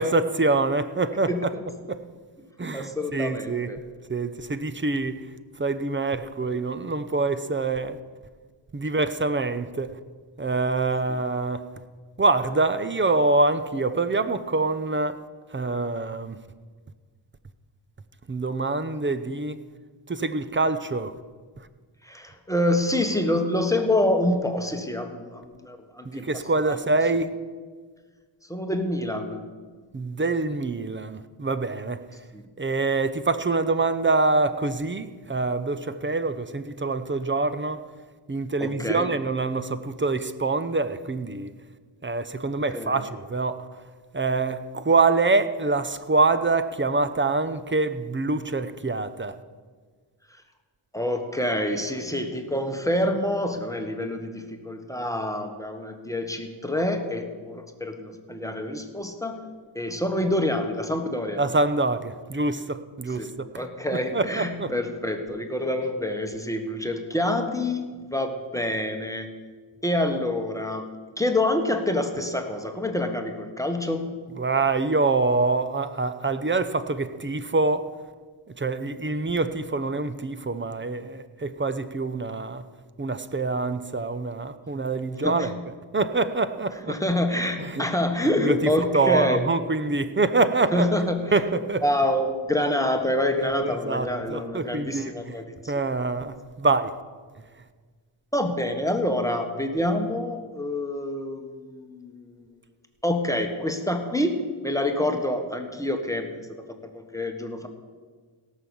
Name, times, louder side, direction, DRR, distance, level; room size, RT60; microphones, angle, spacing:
voice 1, 0.0-1.5 1.9-2.0 2.6-3.8 4.1-5.3 5.6-8.0 8.7-10.0 10.4-11.7 12.2-15.2 15.5-16.4 18.3-19.6 20.1-21.1 21.6-21.7 26.0-27.3 29.9-32.0 32.6-37.8 38.3-41.5 42.0-43.7 44.1-49.4 61.4-63.5 63.9-64.7 74.4-77.9 78.6-82.6 83.0-85.5 85.9-86.9 87.6-87.9 88.2-90.9 91.3-91.8 93.6-95.4 95.7-97.0, right 3 dB, 25° right, 12 dB, 0.7 m, -25 dB
voice 2, 2.7-3.8 22.0-26.2 26.7-26.8 28.5-29.5 32.3-32.4 38.6-39.1 42.7-43.0 50.9-59.4 59.7-61.4 63.2-69.3 69.8-70.9 71.2-74.1 85.2-85.6 86.9-89.4 90.7-91.4 91.8-95.7 98.3-102.4 103.0-106.3 106.9-107.7, left 1 dB, 5° left, 4 dB, 1.4 m, -27 dB
17.0 x 6.4 x 7.1 m, 1.5 s
cardioid pair, 75°, 48 cm